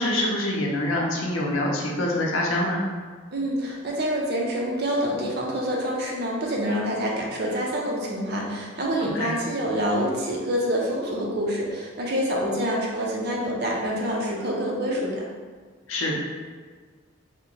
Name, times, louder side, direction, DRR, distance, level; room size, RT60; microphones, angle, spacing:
voice 1, 0.0-2.8 9.0-9.3 15.9-16.1, left 1 dB, 75° left, -1 dB, 0.6 m, -25 dB
voice 2, 3.3-15.2, equal, 50° right, -2 dB, 0.6 m, -26 dB
2.8 x 2.1 x 3.8 m, 1.5 s
head